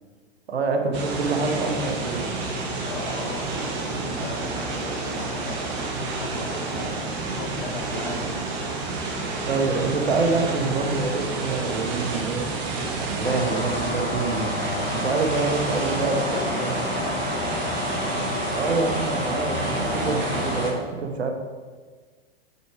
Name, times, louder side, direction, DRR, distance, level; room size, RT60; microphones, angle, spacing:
voice 1, 0.5-2.4 9.4-12.5 12.9-16.7 18.5-21.3, right 4 dB, 80° right, 4 dB, 1.3 m, -26 dB
sound 1, 0.9-20.7, right 3 dB, 35° right, 1.6 m, -29 dB
voice 2, 2.8-3.5 4.0-5.6 6.2-8.7 15.7-17.7, left 4 dB, 60° left, 3 dB, 1.5 m, -37 dB
sound 2, 13.2-20.7, left 5 dB, 80° left, 1.1 m, -31 dB
8.3 x 4.8 x 4.8 m, 1.5 s
hypercardioid pair, 110°, 31 cm